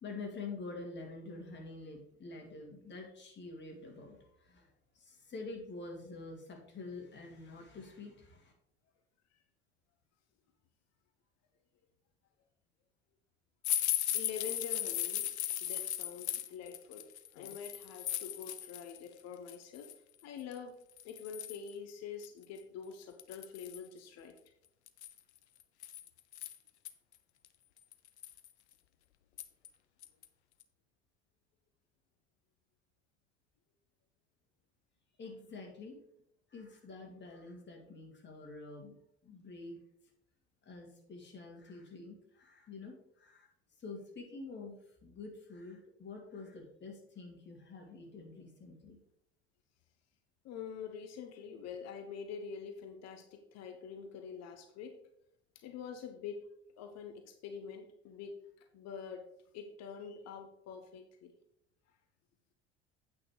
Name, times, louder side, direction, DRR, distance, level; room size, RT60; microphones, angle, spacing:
voice 1, 0.0-4.2 4.4-4.7 4.9-8.5 35.2-36.0 36.5-39.8 40.7-43.5 43.8-49.0, left 3 dB, 30° left, 1 dB, 2.6 m, -47 dB
sound 1, 13.6-19.0 19.3-19.9 20.5-20.6 21.0-21.7 22.2-22.3 22.6-22.7 23.2-23.9 24.9-26.9 27.4-27.5 27.9-28.5 29.4-29.7 30.0-30.2 30.6-30.7, left 11 dB, 70° left, 0.7 m, -37 dB
voice 2, 14.1-15.3 15.6-19.9 20.2-20.8 21.0-24.3 50.4-55.0 55.5-56.5 56.8-58.4 58.7-59.3 59.5-61.3, left 6 dB, 50° left, 6 dB, 1.1 m, -46 dB
8.6 x 6.0 x 4.9 m, 0.73 s
figure-of-eight pair, 60°, 34 cm